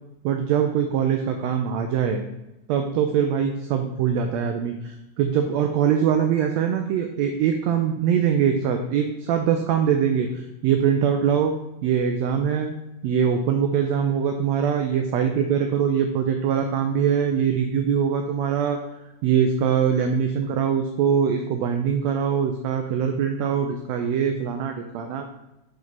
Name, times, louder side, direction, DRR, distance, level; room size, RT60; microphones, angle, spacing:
voice 1, 0.2-2.2 2.7-11.6 11.8-12.7 13.0-18.8 19.2-25.2, right 8 dB, 85° right, 5 dB, 1.5 m, -23 dB
5.9 x 5.1 x 3.9 m, 0.96 s
omnidirectional pair, 3.5 m